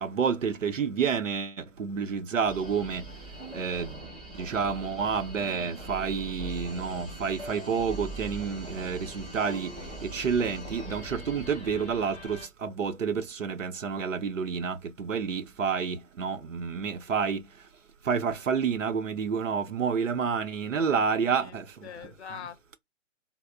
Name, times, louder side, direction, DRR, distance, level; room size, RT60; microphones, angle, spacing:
voice 1, 0.0-3.0 3.5-4.0 4.3-9.7 10.0-17.4 18.0-22.1, right 6 dB, 75° right, 0.7 m, -29 dB
sound 1, 2.4-12.5, right 1 dB, ahead, 0.5 m, -41 dB
voice 2, 20.6-21.6 21.8-22.8, left 7 dB, 55° left, 0.6 m, -44 dB
3.1 x 2.0 x 2.2 m
figure-of-eight pair, 135°, 39 cm